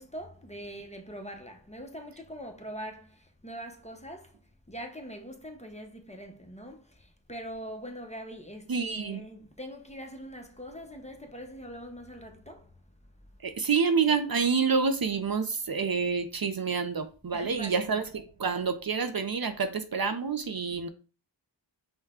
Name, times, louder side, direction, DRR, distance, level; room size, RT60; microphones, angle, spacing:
voice 1, 0.0-4.4 4.7-12.7 17.3-17.8, equal, 15° left, 0.7 m, -43 dB
voice 2, 8.7-9.2 13.4-20.9, right 5 dB, 50° right, 0.5 m, -28 dB
5.5 x 2.2 x 3.6 m
wide cardioid pair, 55°, 46 cm